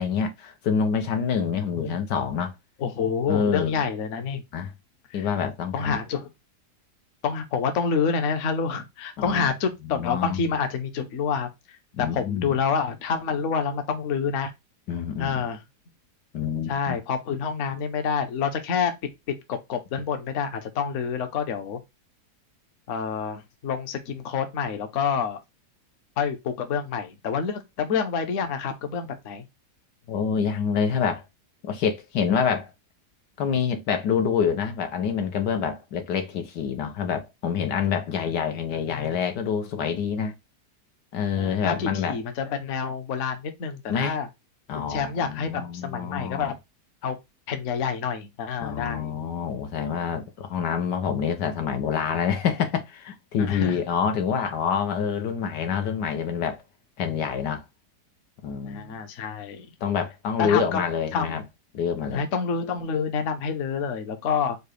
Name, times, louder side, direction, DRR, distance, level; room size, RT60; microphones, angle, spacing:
voice 1, 0.0-2.5 3.3-3.8 4.5-4.7 5.1-6.0 9.2-9.5 9.8-10.5 12.0-12.6 14.9-15.4 16.3-17.0 30.1-31.2 31.6-32.7 33.4-40.3 41.1-42.2 43.9-44.2 44.7-46.5 48.6-56.6 57.0-57.6 58.4-58.9 59.8-61.4 61.7-62.2, left 7 dB, 85° left, 1.5 m, -27 dB
voice 2, 2.8-4.4 5.1-5.3 5.7-6.3 7.2-11.5 12.0-14.5 15.2-15.6 16.7-18.9 19.5-21.8 22.9-25.4 26.2-29.4 38.8-39.1 41.3-44.3 44.7-46.6 47.0-47.2 47.5-49.1 53.4-53.8 58.6-59.7 60.4-60.8 61.1-61.4 62.1-64.6, left 6 dB, 55° left, 1.0 m, -28 dB
4.8 x 2.3 x 4.9 m
omnidirectional pair, 1.8 m